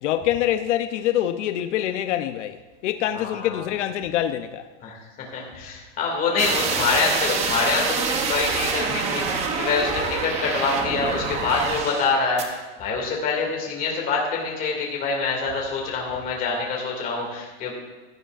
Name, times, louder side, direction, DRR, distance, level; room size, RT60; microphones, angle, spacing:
voice 1, 0.0-4.7, left 12 dB, 85° left, 0.7 m, -25 dB
voice 2, 3.1-3.6 4.8-17.7, left 4 dB, 25° left, 2.3 m, -26 dB
sound 1, 6.4-12.1 12.4-12.5, right 5 dB, 20° right, 0.7 m, -26 dB
16.0 x 11.0 x 2.5 m
supercardioid pair, 175°, 35 cm